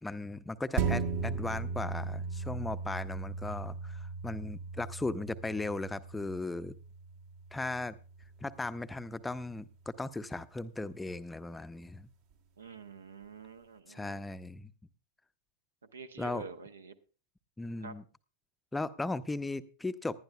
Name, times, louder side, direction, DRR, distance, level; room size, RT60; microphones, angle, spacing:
voice 1, 0.0-6.7 7.5-8.0 8.4-12.1 13.9-14.7 16.2-16.5 17.6-18.0 18.7-20.2, left 2 dB, 10° left, 12 dB, 0.6 m, -37 dB
sound 1, 0.8-9.6 10.0-10.1, right 5 dB, 55° right, 1.4 m, -38 dB
voice 2, 12.6-14.2 15.9-16.9 17.8-18.0, right 5 dB, 70° right, 12 dB, 0.8 m, -47 dB
19.0 x 11.5 x 2.3 m, 0.35 s
figure-of-eight pair, 90°, 0 cm